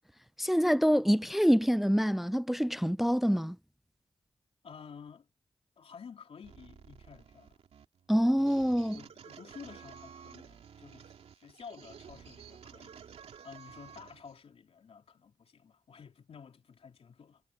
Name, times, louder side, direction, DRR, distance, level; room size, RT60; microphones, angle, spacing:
voice 1, 0.4-3.6 8.1-9.0, equal, ahead, 0.5 m, -26 dB
voice 2, 4.6-5.3 5.8-7.6 8.9-13.1 13.4-17.4, left 6 dB, 75° left, 3.4 m, -51 dB
sound 1, 6.4-14.4, right 7 dB, 85° right, 3.0 m, -52 dB
cardioid pair, 45°, 10 cm